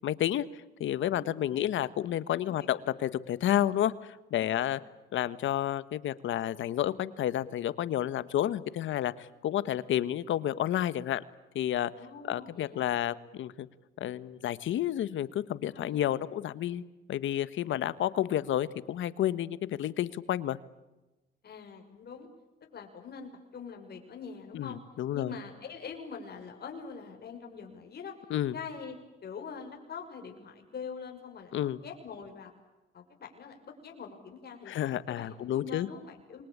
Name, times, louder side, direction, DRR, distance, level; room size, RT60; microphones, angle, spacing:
voice 1, 0.0-0.4 0.8-4.8 5.1-11.2 11.5-11.9 12.2-13.7 14.0-16.8 17.1-20.6 24.5-25.4 28.3-28.6 31.5-31.8 34.7-35.9, left 12 dB, 75° left, 16 dB, 1.4 m, -30 dB
voice 2, 1.1-1.6 12.0-12.9 15.9-16.0 21.4-22.3 22.7-24.8 25.1-28.1 28.5-29.0 29.2-31.5 31.8-32.5 32.9-34.7 35.1-36.5, left 6 dB, 55° left, 3 dB, 6.2 m, -44 dB
27.5 x 23.5 x 8.7 m, 1.0 s
cardioid pair, 90°, 20 cm